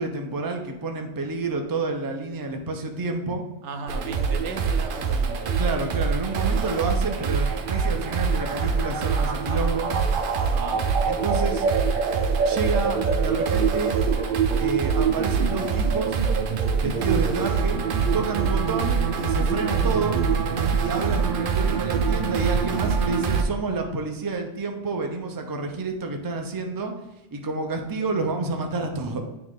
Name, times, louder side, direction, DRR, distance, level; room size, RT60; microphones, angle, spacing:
voice 1, 0.0-3.4 5.6-9.9 11.1-11.6 12.4-14.0 14.6-16.2 16.8-17.8 18.1-20.2 20.8-26.9 27.3-29.2, right 3 dB, 25° right, 4 dB, 0.5 m, -29 dB
voice 2, 3.6-5.6 10.4-10.8 18.4-18.8, right 3 dB, 90° right, 6 dB, 1.1 m, -37 dB
sound 1, 3.9-23.4, right 5 dB, 55° right, 0.7 m, -24 dB
9.6 x 3.3 x 3.7 m, 0.95 s
omnidirectional pair, 1.1 m